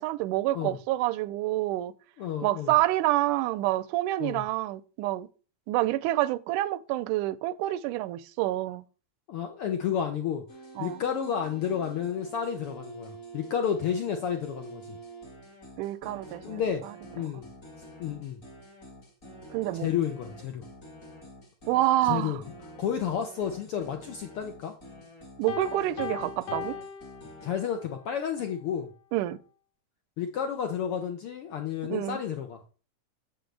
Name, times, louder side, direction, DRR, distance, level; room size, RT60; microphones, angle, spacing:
voice 1, 0.0-1.9 2.4-5.3 5.7-8.8 10.8-11.0 15.8-16.6 19.5-19.9 21.7-22.4 25.4-26.8 29.1-29.4 31.9-32.2, right 15 dB, 90° right, 2.1 m, -27 dB
voice 2, 2.2-2.7 4.2-4.4 9.3-10.4 10.8-15.0 16.4-16.8 17.1-17.4 18.0-18.4 19.7-20.6 22.0-22.4 22.8-24.7 27.4-28.9 30.2-32.6, left 8 dB, 80° left, 1.2 m, -31 dB
sound 1, 10.5-27.5, right 2 dB, 30° left, 2.0 m, -47 dB
Piano, 25.5-27.9, left 8 dB, 65° left, 1.7 m, -38 dB
8.3 x 7.8 x 3.3 m
omnidirectional pair, 3.5 m